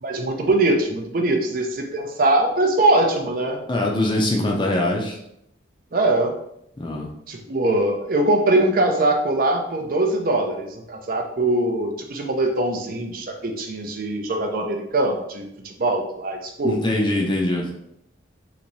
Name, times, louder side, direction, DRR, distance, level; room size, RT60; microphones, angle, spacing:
voice 1, 0.0-3.6 5.9-6.3 7.3-16.8, right 2 dB, 50° right, 2 dB, 0.5 m, -22 dB
voice 2, 3.7-5.2 6.8-7.1 16.6-17.7, left 1 dB, 25° left, 0 dB, 0.5 m, -22 dB
3.0 x 2.7 x 4.0 m, 0.76 s
head